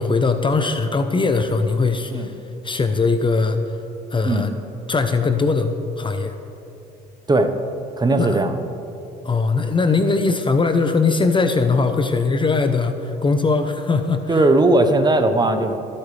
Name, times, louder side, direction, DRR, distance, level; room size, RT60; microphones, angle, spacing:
voice 1, 0.0-2.4 2.6-3.6 4.1-4.5 4.9-6.3 8.2-8.4 9.2-14.4, left 4 dB, 25° left, 8 dB, 0.9 m, -20 dB
voice 2, 8.0-8.6 14.3-15.8, right 2 dB, 20° right, 7 dB, 1.2 m, -18 dB
25.0 x 8.6 x 3.4 m, 2.8 s
supercardioid pair, 70°, 19 cm